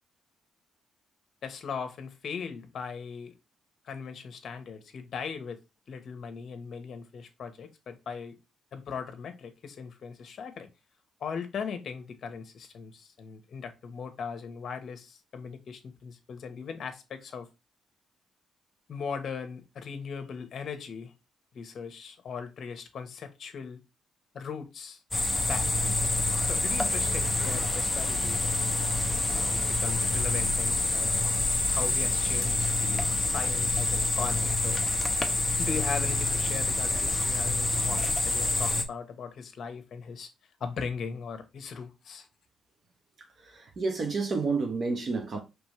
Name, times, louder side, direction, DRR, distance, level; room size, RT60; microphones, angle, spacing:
voice 1, 1.4-3.3 3.8-5.6 5.9-8.4 8.7-10.7 11.2-17.5 18.9-21.1 21.5-23.8 24.3-25.0 25.4-26.0 26.4-28.4 29.3-31.3 31.7-34.8 35.6-40.3 40.6-42.3, left 6 dB, 55° left, 1.1 m, -39 dB
sound 1, 25.1-38.8, left 2 dB, 15° left, 0.9 m, -27 dB
voice 2, 43.6-45.4, right 4 dB, 45° right, 1.2 m, -29 dB
5.2 x 3.3 x 3.1 m
cardioid pair, 90°, 0 cm